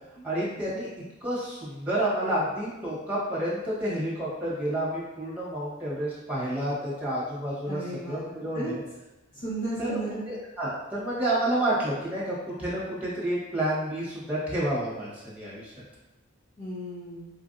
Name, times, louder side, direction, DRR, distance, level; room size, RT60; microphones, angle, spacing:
voice 1, 0.2-0.9 1.2-8.8 9.8-10.0 10.3-15.7, right 1 dB, 5° right, -8 dB, 1.2 m, -29 dB
voice 2, 7.7-8.7 9.3-10.2 16.6-17.3, right 2 dB, 50° left, -11 dB, 1.1 m, -35 dB
4.2 x 2.5 x 2.6 m, 1.0 s
head